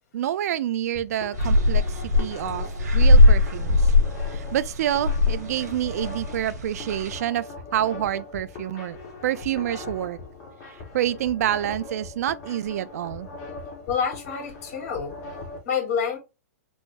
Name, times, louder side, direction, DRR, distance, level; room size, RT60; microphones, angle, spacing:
voice 1, 0.1-2.6 2.9-3.8 4.3-7.4 7.7-9.0 9.2-10.2 10.9-13.3, right 11 dB, 70° right, 0.4 m, -27 dB
sound 1, 0.8-15.6, left 3 dB, 35° left, 1.5 m, -40 dB
sound 2, 1.3-7.2, left 2 dB, 85° right, 1.5 m, -20 dB
voice 2, 13.9-15.1 15.6-16.2, left 7 dB, 55° left, 1.8 m, -27 dB
4.6 x 2.0 x 2.8 m
hypercardioid pair, 130°, 9 cm